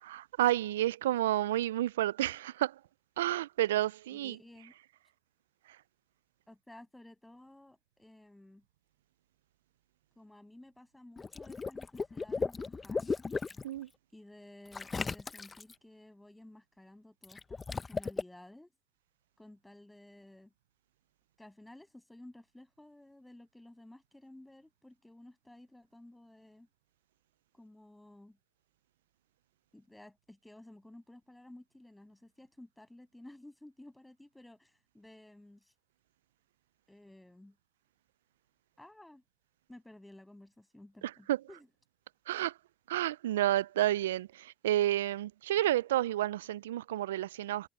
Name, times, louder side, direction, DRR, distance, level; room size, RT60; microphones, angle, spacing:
voice 1, 0.0-2.8 3.2-4.4 13.6-13.9 41.0-41.4 42.3-42.6 42.9-47.7, right 14 dB, 85° right, 0.4 m, -30 dB
voice 2, 4.1-4.7 6.5-8.6 10.2-13.1 14.1-18.7 19.4-20.5 21.4-26.7 27.5-28.4 29.7-35.7 36.9-37.6 38.8-39.2 39.7-41.7, left 1 dB, 10° left, 7.6 m, -54 dB
Water / Liquid, 11.2-13.6 14.7-15.7 17.2-18.2, left 4 dB, 25° left, 1.0 m, -36 dB
hypercardioid pair, 70°, 0 cm